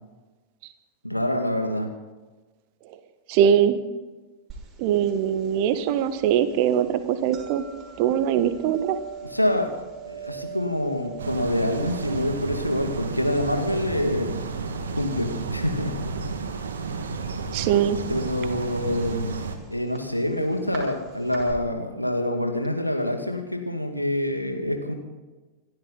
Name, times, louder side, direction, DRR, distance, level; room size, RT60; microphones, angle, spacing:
voice 1, 1.0-1.9 9.3-9.7 10.1-14.5 15.0-16.0 18.1-19.4 19.7-24.9, left 1 dB, 90° left, 4 dB, 2.2 m, -26 dB
voice 2, 3.3-3.8 4.8-7.6 8.0-9.0 17.5-18.0, right 9 dB, 45° right, 11 dB, 1.4 m, -22 dB
sound 1, 4.5-21.5, right 7 dB, 25° right, 6.0 m, -44 dB
sound 2, 11.2-19.6, right 4 dB, 65° right, 2.0 m, -32 dB
27.5 x 12.0 x 4.1 m, 1.2 s
figure-of-eight pair, 90°, 0 cm